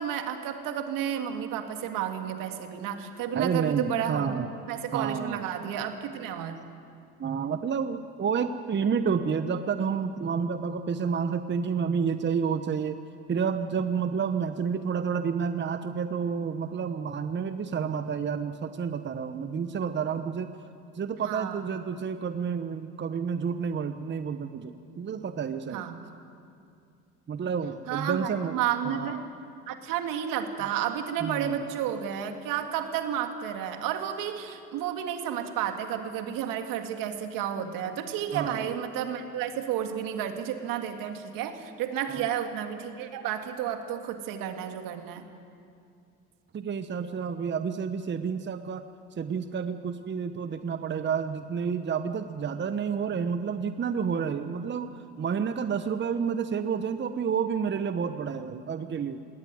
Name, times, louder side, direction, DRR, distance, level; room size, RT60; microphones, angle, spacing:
voice 1, 0.0-4.3 4.7-6.6 21.2-21.6 25.7-26.0 27.9-29.2 29.7-45.2, right 9 dB, 70° right, 6 dB, 2.1 m, -31 dB
voice 2, 3.3-4.5 4.9-5.5 7.2-13.0 13.3-20.5 20.9-25.8 27.3-28.5 28.8-29.3 31.2-31.7 38.3-38.7 42.1-42.3 46.5-48.8 49.1-59.2, right 6 dB, 30° right, 10 dB, 1.0 m, -30 dB
19.5 x 17.5 x 9.5 m, 2.4 s
hypercardioid pair, 70°, 34 cm